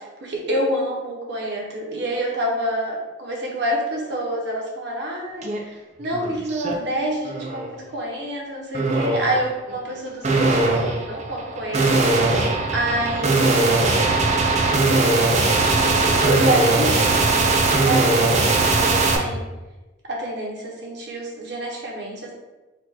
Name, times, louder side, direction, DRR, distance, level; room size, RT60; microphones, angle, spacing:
voice 1, 0.0-11.9 12.7-14.1 15.5-19.4 20.0-22.3, right 1 dB, 60° right, -2 dB, 1.0 m, -28 dB
sound 1, 5.4-5.6 6.0-6.7 7.2-7.7 8.7-9.4 10.2-19.2, right 3 dB, 35° right, 0.5 m, -20 dB
4.5 x 2.5 x 4.1 m, 1.1 s
head